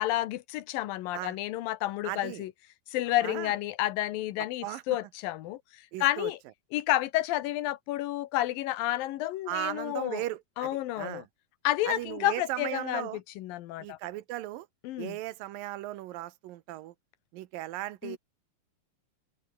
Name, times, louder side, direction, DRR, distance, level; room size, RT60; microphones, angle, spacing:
voice 1, 0.0-2.5 2.9-6.4 6.7-10.2 10.6-11.2 11.6-13.1 13.4-14.0 14.8-15.2 18.0-18.2, left 15 dB, 85° left, 2.8 m, -30 dB
voice 2, 2.0-2.4 3.2-3.5 4.6-4.8 5.9-6.3 9.5-11.3 11.9-13.2 13.8-14.7 15.0-16.9 17.3-18.2, right 15 dB, 80° right, 2.7 m, -37 dB
omnidirectional pair, 4.0 m